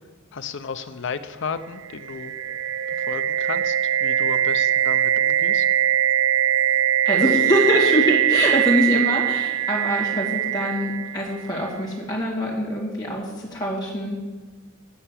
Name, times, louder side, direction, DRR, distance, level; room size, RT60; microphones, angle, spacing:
voice 1, 0.3-2.3 2.9-5.7, left 5 dB, 60° left, 11 dB, 0.6 m, -33 dB
sound 1, 1.8-11.7, right 11 dB, 75° right, 0.5 m, -22 dB
voice 2, 7.0-14.2, equal, 20° left, -7 dB, 2.3 m, -24 dB
8.6 x 6.7 x 7.4 m, 1.3 s
head